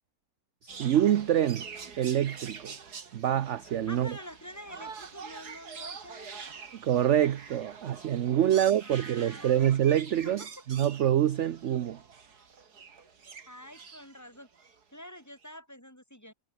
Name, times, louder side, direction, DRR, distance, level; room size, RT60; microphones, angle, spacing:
voice 1, 0.6-1.7 2.0-2.7 3.1-4.2 6.8-12.0, right 11 dB, 55° right, 0.9 m, -26 dB
sound 1, 0.7-14.8 15.4-15.5, right 5 dB, 80° right, 2.7 m, -46 dB
voice 2, 3.9-6.5 8.5-9.7 10.2-10.6 13.5-16.3, equal, 10° left, 3.2 m, -47 dB
omnidirectional pair, 1.7 m